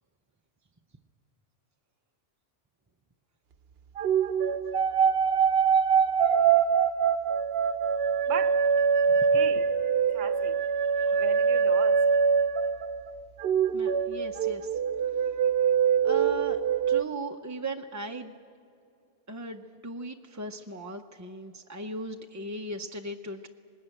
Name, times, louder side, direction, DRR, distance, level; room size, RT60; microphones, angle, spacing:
sound 1, 4.0-13.1 13.4-17.0, right 6 dB, 60° right, 0.8 m, -24 dB
voice 1, 8.3-8.6 9.3-9.6 10.1-10.7 11.0-12.1, right 8 dB, 80° right, 1.1 m, -37 dB
voice 2, 13.7-14.7 16.0-16.6 16.9-18.3 19.3-23.5, right 2 dB, 30° right, 0.3 m, -37 dB
19.5 x 19.0 x 8.9 m
omnidirectional pair, 1.2 m